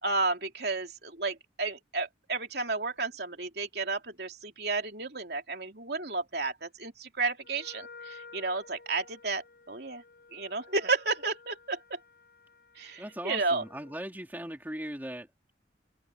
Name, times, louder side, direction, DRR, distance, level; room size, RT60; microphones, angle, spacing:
voice 1, 0.0-10.0 10.3-12.0 12.7-13.6, right 3 dB, 55° right, 3.3 m, -32 dB
Wind instrument woodwind instrument, 7.4-14.1, left 4 dB, 55° left, 7.1 m, -53 dB
voice 2, 13.0-15.3, equal, 10° right, 3.1 m, -39 dB
head